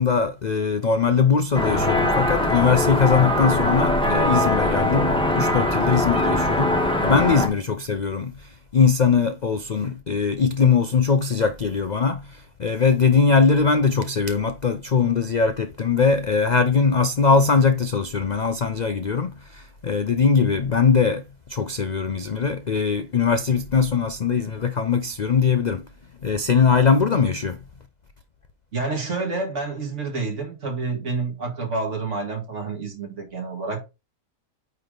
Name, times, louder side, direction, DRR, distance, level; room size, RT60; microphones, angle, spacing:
voice 1, 0.0-25.9 26.2-27.6, left 5 dB, 75° left, 0.4 m, -21 dB
sound 1, 1.5-7.5, left 1 dB, 5° left, 1.0 m, -21 dB
voice 2, 28.7-33.8, right 3 dB, 50° right, 2.3 m, -28 dB
9.1 x 3.5 x 3.8 m
omnidirectional pair, 1.6 m